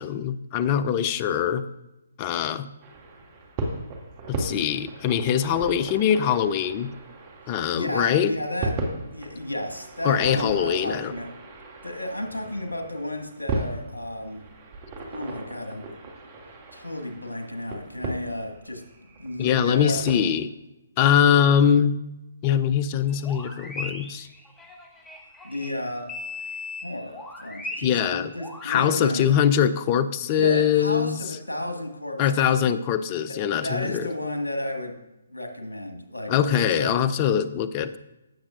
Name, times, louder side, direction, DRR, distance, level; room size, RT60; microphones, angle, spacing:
voice 1, 0.0-1.6 2.2-2.7 4.3-6.9 7.5-8.3 10.0-11.1 19.4-20.5 21.0-21.9 22.4-24.3 27.8-28.3 28.6-31.2 32.2-34.1 36.3-38.0, left 8 dB, 30° left, 14 dB, 0.5 m, -22 dB
sound 1, 2.8-20.2, right 2 dB, 30° right, 1.7 m, -36 dB
voice 2, 7.5-8.7 9.1-11.3 11.8-14.4 15.1-15.8 16.7-18.8 19.2-20.0 25.4-26.1 26.8-29.3 30.3-32.4 33.6-35.0 35.3-37.0, left 1 dB, 85° left, 3 dB, 1.8 m, -32 dB
sound 2, 23.1-28.7, left 2 dB, 10° left, 1.1 m, -38 dB
16.5 x 7.2 x 2.5 m, 0.93 s
figure-of-eight pair, 135°, 0 cm